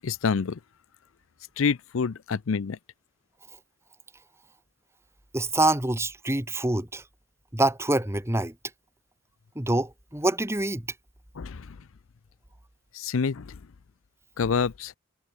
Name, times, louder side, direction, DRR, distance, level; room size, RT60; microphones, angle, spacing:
voice 1, 0.0-0.6 1.6-2.8 11.4-11.9 12.9-13.6 14.4-14.9, left 5 dB, 85° left, 0.5 m, -27 dB
voice 2, 5.3-7.0 7.5-8.5 9.5-10.8, right 2 dB, 15° right, 1.4 m, -25 dB
head